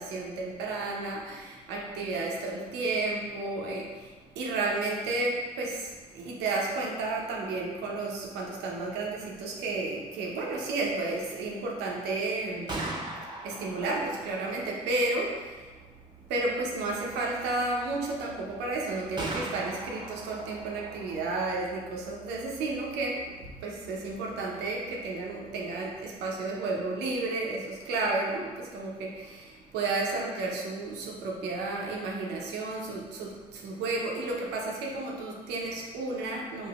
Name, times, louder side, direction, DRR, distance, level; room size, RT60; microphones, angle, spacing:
voice 1, 0.0-13.0 13.4-15.8 16.3-36.7, right 3 dB, 85° right, -2 dB, 0.7 m, -32 dB
Gunshot gunfire, 12.4-26.3, right 2 dB, 25° right, 0.8 m, -43 dB
5.1 x 2.5 x 2.4 m, 1.3 s
supercardioid pair, 50°, 17 cm